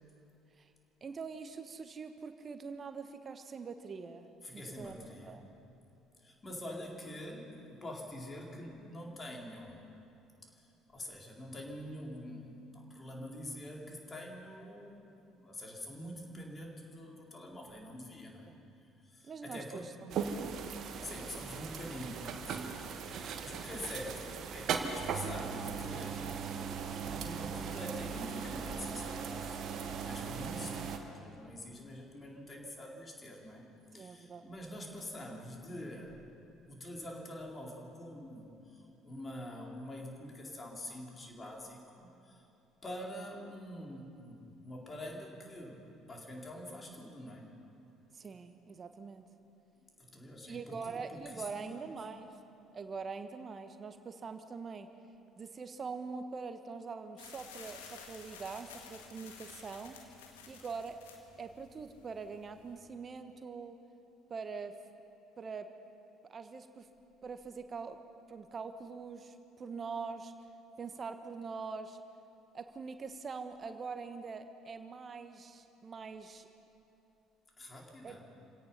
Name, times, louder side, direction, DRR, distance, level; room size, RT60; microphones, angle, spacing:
voice 1, 1.0-4.3 4.5-5.0 5.2-5.5 18.5-18.6 19.2-20.5 22.8-22.9 33.9-34.4 48.1-49.2 50.4-52.3 52.7-54.9 55.4-60.2 60.5-61.0 61.4-63.8 64.3-64.7 65.4-65.7 66.3-66.9 67.2-68.0 68.3-70.3 70.8-72.0 72.5-76.5 78.0-78.2, right 5 dB, 35° right, 8 dB, 1.2 m, -43 dB
voice 2, 4.4-5.5 6.2-9.8 10.4-10.5 10.9-15.1 15.4-18.5 19.0-20.0 20.9-26.2 27.0-29.5 30.0-33.7 33.9-36.2 36.7-42.5 42.8-47.5 50.0-52.0 77.6-78.3, left 1 dB, 25° left, -1 dB, 4.2 m, -46 dB
sound 1, 20.1-31.0, right 6 dB, 50° right, 1.6 m, -38 dB
sound 2, 57.2-62.8, left 6 dB, 75° left, 1.9 m, -53 dB
28.0 x 17.0 x 5.7 m, 2.8 s
figure-of-eight pair, 55°, 0 cm